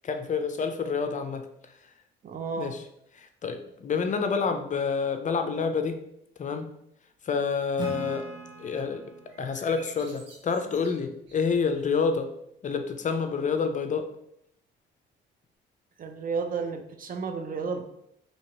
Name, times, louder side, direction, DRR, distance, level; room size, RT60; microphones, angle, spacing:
voice 1, 0.0-1.5 2.6-2.8 3.2-6.0 6.4-6.7 7.2-8.3 8.6-9.0 9.4-12.3 12.6-14.1, left 5 dB, 40° left, 7 dB, 0.5 m, -28 dB
voice 2, 2.2-2.8 16.0-17.8, right 5 dB, 45° right, 6 dB, 0.6 m, -32 dB
Acoustic guitar / Strum, 7.8-11.2, right 3 dB, 20° right, 1.1 m, -42 dB
sound 1, 9.3-12.0, right 2 dB, 65° right, 1.1 m, -53 dB
2.9 x 2.8 x 4.3 m, 0.76 s
cardioid pair, 90°, 20 cm